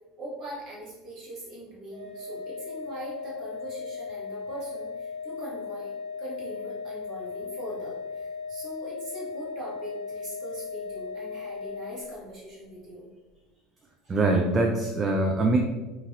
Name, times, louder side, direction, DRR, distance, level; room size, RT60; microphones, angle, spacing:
voice 1, 0.2-5.9 6.2-13.1 14.0-14.2, right 1 dB, 45° right, -5 dB, 1.3 m, -41 dB
Organ, 1.9-12.6, left 5 dB, 55° left, 0.6 m, -37 dB
voice 2, 14.1-15.6, right 2 dB, 30° right, 2 dB, 0.3 m, -23 dB
2.9 x 2.6 x 2.5 m, 1.2 s
hypercardioid pair, 80°, 0 cm